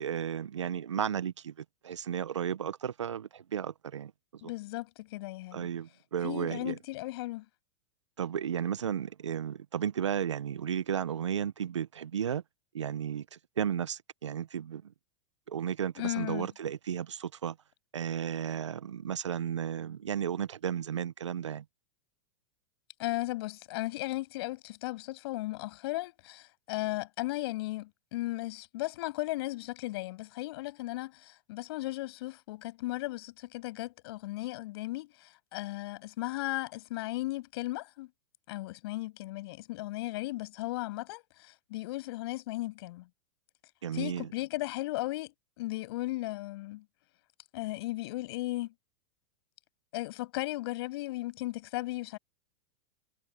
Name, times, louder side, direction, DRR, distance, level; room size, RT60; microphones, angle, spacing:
voice 1, 0.0-1.5 1.8-4.4 5.5-6.8 8.2-12.4 12.7-14.9 15.5-17.6 17.9-21.6 43.8-44.3, right 8 dB, 85° right, 1.4 m, -34 dB
voice 2, 4.4-5.7 6.2-7.5 16.0-16.5 23.0-38.1 38.5-43.1 43.9-46.8 47.5-48.7 49.9-52.2, left 19 dB, 60° left, 7.8 m, -36 dB
hypercardioid pair, 105°, 15 cm